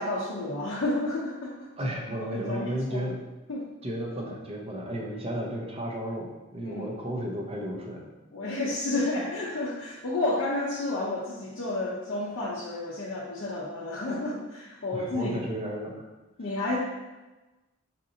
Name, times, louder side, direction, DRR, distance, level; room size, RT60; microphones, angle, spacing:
voice 1, 0.0-1.7 2.3-3.0 3.5-3.7 6.6-7.0 8.3-15.3 16.4-16.8, left 2 dB, 60° left, -7 dB, 0.5 m, -31 dB
voice 2, 1.8-3.2 3.8-8.1 14.9-16.0, equal, 30° right, -1 dB, 0.5 m, -33 dB
4.1 x 2.6 x 2.7 m, 1.1 s
head